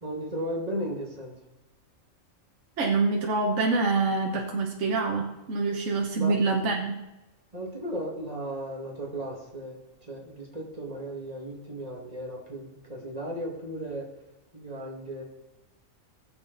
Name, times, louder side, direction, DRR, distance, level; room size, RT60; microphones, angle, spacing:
voice 1, 0.0-1.4 6.1-6.3 7.5-9.8 10.1-14.0 14.5-15.2, right 1 dB, 25° right, -2 dB, 2.4 m, -35 dB
voice 2, 2.8-7.0, right 3 dB, 55° right, 1 dB, 1.5 m, -26 dB
18.5 x 7.2 x 4.1 m, 0.99 s
omnidirectional pair, 1.5 m